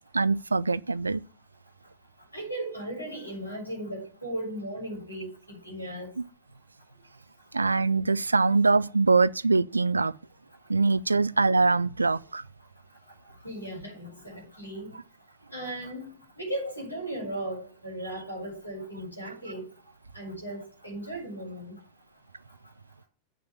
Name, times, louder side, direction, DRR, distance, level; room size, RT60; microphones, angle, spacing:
voice 1, 0.1-1.2 7.5-10.1 10.7-12.4, right 3 dB, 80° right, 0.4 m, -23 dB
voice 2, 2.3-6.1 13.4-14.9 15.5-16.0 16.4-19.7 20.1-21.7, right 1 dB, 90° left, 6.7 m, -36 dB
8.5 x 5.9 x 7.3 m
figure-of-eight pair, 90°, 0 cm